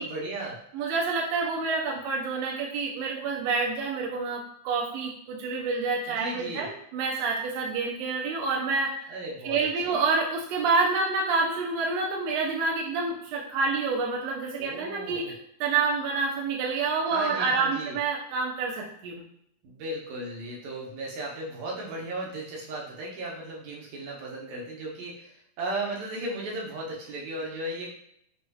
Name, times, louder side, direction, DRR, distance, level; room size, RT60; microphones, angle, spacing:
voice 1, 0.0-0.6 6.1-6.7 9.1-9.6 9.8-10.0 14.6-15.3 17.1-18.0 19.6-27.9, right 1 dB, 65° right, -3 dB, 2.0 m, -36 dB
voice 2, 0.7-9.0 9.4-15.3 15.6-19.2, right 4 dB, 90° right, -1 dB, 1.5 m, -28 dB
6.6 x 3.1 x 2.3 m, 0.69 s
omnidirectional pair, 3.9 m